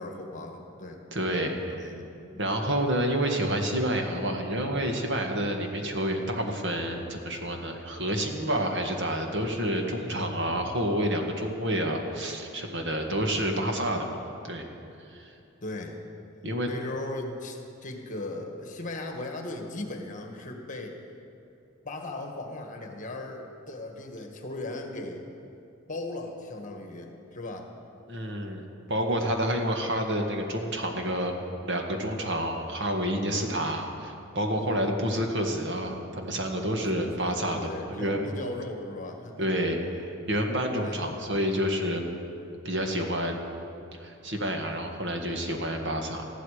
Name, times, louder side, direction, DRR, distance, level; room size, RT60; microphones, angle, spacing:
voice 1, 0.0-1.0 1.7-2.4 15.6-16.1 16.6-21.0 21.8-25.3 25.9-27.7 34.5-34.9 36.8-39.5 40.8-41.2, left 2 dB, 35° left, 3 dB, 1.5 m, -38 dB
voice 2, 1.1-1.9 2.4-14.1 14.4-14.7 15.1-15.3 16.4-16.7 28.1-31.3 31.6-37.6 37.9-38.3 39.4-42.1 42.7-43.4 44.0-46.3, equal, 55° right, 2 dB, 1.7 m, -29 dB
19.5 x 14.5 x 5.0 m, 2.7 s
head